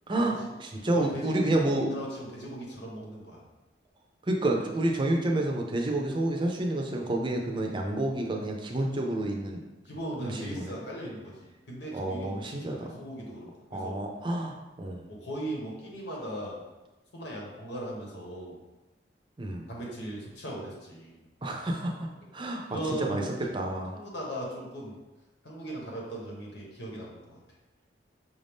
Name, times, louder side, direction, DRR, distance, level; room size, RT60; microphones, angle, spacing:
voice 1, 0.1-1.9 4.3-9.6 10.2-10.7 11.9-12.8 13.7-15.1 19.4-19.6 21.4-22.1 22.3-22.6 23.0-23.2 23.5-23.9, right 1 dB, 25° right, 1 dB, 0.6 m, -29 dB
voice 2, 0.9-3.4 9.9-14.0 15.1-16.6 17.1-18.6 19.7-21.2 22.7-23.3 23.9-25.0 25.4-27.4, right 1 dB, 70° left, -3 dB, 1.3 m, -38 dB
5.6 x 2.7 x 3.5 m, 1.1 s
head